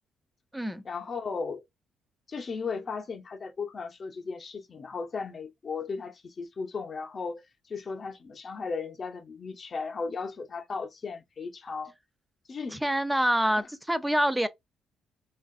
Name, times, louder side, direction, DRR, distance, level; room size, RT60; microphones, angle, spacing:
voice 1, 0.8-1.6 2.3-7.4 7.7-11.9 12.5-12.8 13.6-13.7, left 4 dB, 35° left, 0.6 m, -36 dB
voice 2, 12.7-14.5, equal, 5° right, 0.4 m, -26 dB
3.6 x 2.4 x 2.3 m
cardioid pair, 120°, 0 cm